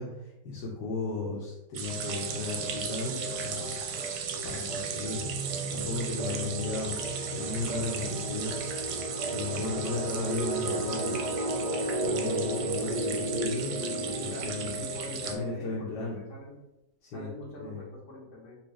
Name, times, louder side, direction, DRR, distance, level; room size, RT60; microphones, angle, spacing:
voice 1, 0.0-3.7 4.4-5.4 5.7-7.0 7.3-8.5 9.3-11.2 12.0-14.8 15.2-16.2 17.0-17.3 17.6-17.8, left 3 dB, 80° left, -4 dB, 1.3 m, -35 dB
sound 1, 1.7-15.3, right 7 dB, 90° right, 1.2 m, -36 dB
sound 2, 1.8-15.4, right 3 dB, 35° left, 1.1 m, -40 dB
sound 3, 4.8-15.3, equal, 60° right, 0.3 m, -35 dB
voice 2, 14.2-16.6 17.1-18.6, left 1 dB, 65° left, -4 dB, 1.6 m, -45 dB
4.3 x 2.4 x 3.0 m, 0.94 s
omnidirectional pair, 1.8 m